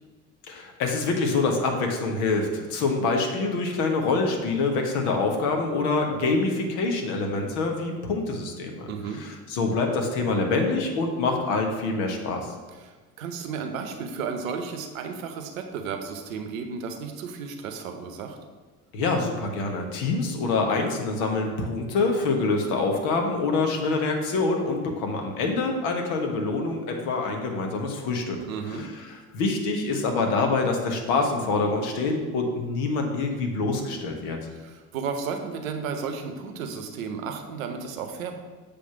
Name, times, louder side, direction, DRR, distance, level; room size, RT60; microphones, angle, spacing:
voice 1, 0.5-8.9 9.2-12.5 18.9-28.4 28.8-28.9 29.3-34.4, left 3 dB, 55° left, 3 dB, 1.2 m, -25 dB
voice 2, 8.9-9.2 12.8-18.4 28.5-28.9 34.5-38.4, right 5 dB, 65° right, 6 dB, 0.9 m, -33 dB
7.5 x 3.5 x 5.8 m, 1.3 s
figure-of-eight pair, 60°, 43 cm